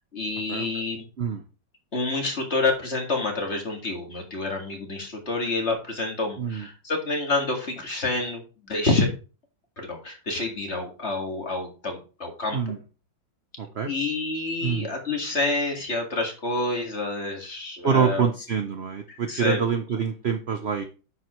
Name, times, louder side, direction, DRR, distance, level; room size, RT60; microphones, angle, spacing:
voice 1, 0.1-1.1 1.9-9.1 9.8-12.7 13.8-18.3 19.1-19.6, left 2 dB, 35° left, 2 dB, 2.2 m, -28 dB
voice 2, 13.6-13.9 14.6-14.9 17.8-20.8, right 7 dB, 55° right, 7 dB, 0.7 m, -26 dB
10.0 x 7.5 x 3.1 m, 0.34 s
omnidirectional pair, 2.0 m